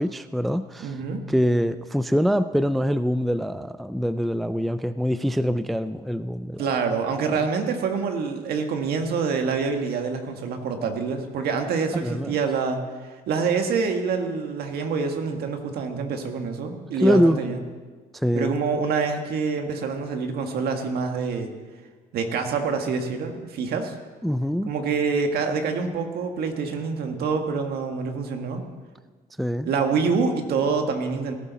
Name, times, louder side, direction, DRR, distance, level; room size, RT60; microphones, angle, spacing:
voice 1, 0.0-1.0 1.3-6.7 7.3-7.4 11.9-12.3 17.0-17.4 18.1-18.6 24.2-24.7 29.4-29.7, equal, ahead, 12 dB, 0.3 m, -24 dB
voice 2, 0.8-1.2 6.6-12.8 13.3-17.6 18.3-21.5 22.1-23.9 24.7-28.6 29.6-31.4, right 5 dB, 70° right, 5 dB, 1.7 m, -26 dB
18.0 x 11.5 x 4.1 m, 1.5 s
cardioid pair, 110°, 17 cm